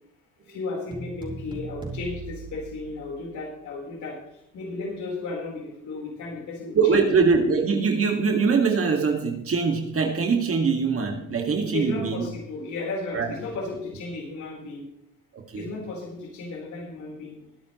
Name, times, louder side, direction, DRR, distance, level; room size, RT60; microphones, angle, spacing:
voice 1, 0.4-7.1 11.7-14.9 15.6-17.5, left 3 dB, 70° left, -2 dB, 4.5 m, -34 dB
sound 1, 0.9-3.5, right 2 dB, 15° right, 4.5 m, -38 dB
voice 2, 6.8-12.3 13.1-13.3 15.3-15.7, right 5 dB, 50° right, 2 dB, 2.3 m, -22 dB
22.0 x 9.3 x 3.2 m, 0.81 s
cardioid pair, 90°, 30 cm